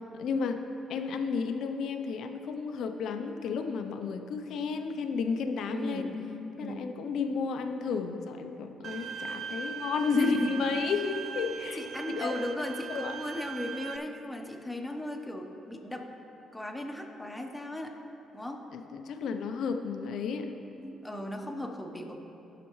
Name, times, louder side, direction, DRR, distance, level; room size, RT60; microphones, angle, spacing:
voice 1, 0.2-0.6 0.9-6.1 6.6-11.8 12.1-12.4 12.9-13.2 18.7-20.5, left 5 dB, 75° left, 6 dB, 0.6 m, -32 dB
voice 2, 5.7-6.2 6.6-6.9 10.1-10.5 11.8-16.1 16.5-17.9 18.3-18.6 20.8-22.2, left 1 dB, 5° left, 1 dB, 1.0 m, -36 dB
Bowed string instrument, 8.8-14.0, right 7 dB, 60° right, 0.3 m, -39 dB
16.5 x 5.8 x 3.1 m, 2.9 s
cardioid pair, 90°, 0 cm